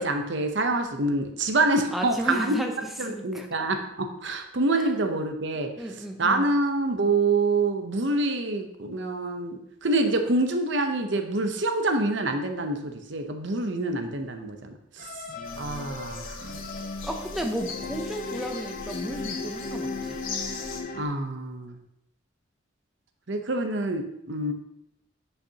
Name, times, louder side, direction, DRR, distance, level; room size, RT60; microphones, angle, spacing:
voice 1, 0.0-2.5 3.0-5.7 6.2-14.7 15.0-15.1 15.6-16.5 21.0-21.8 23.3-24.5, right 2 dB, 60° right, 5 dB, 0.8 m, -26 dB
voice 2, 1.9-3.7 4.8-4.9 5.8-6.5 17.0-20.2, equal, ahead, 2 dB, 0.5 m, -33 dB
sound 1, 15.0-21.0, left 3 dB, 45° left, 0.8 m, -36 dB
sound 2, 15.4-20.8, left 5 dB, 80° left, 1.2 m, -40 dB
9.9 x 5.7 x 2.8 m, 0.80 s
head